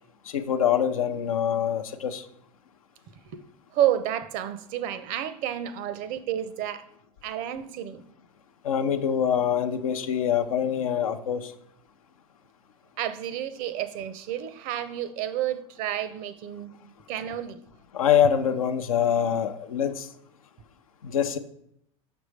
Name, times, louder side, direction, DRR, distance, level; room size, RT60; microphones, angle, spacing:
voice 1, 0.3-2.2 8.6-11.5 17.9-20.0 21.0-21.4, left 8 dB, 90° left, 0.5 m, -24 dB
voice 2, 3.7-6.8 7.2-8.0 13.0-16.7 17.1-17.6, right 11 dB, 55° right, 0.6 m, -30 dB
6.0 x 5.2 x 3.2 m
hypercardioid pair, 90°, 17 cm